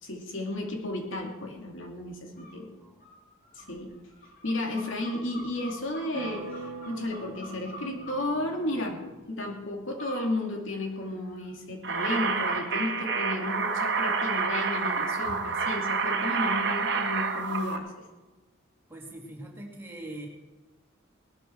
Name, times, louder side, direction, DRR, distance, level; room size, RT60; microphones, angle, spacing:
voice 1, 0.0-2.7 3.6-3.9 4.4-9.0 9.3-18.0, left 1 dB, 70° left, 1 dB, 2.7 m, -33 dB
sound 1, 2.4-2.6 3.0-8.2 10.0-10.3 10.7-11.5, left 1 dB, 40° left, 5.4 m, -46 dB
sound 2, 6.1-9.9, right 3 dB, 70° right, 1.5 m, -43 dB
sound 3, 11.8-17.8, right 5 dB, 55° right, 1.7 m, -28 dB
voice 2, 18.9-20.3, right 1 dB, 10° right, -2 dB, 3.1 m, -42 dB
19.0 x 13.0 x 4.6 m, 1.2 s
head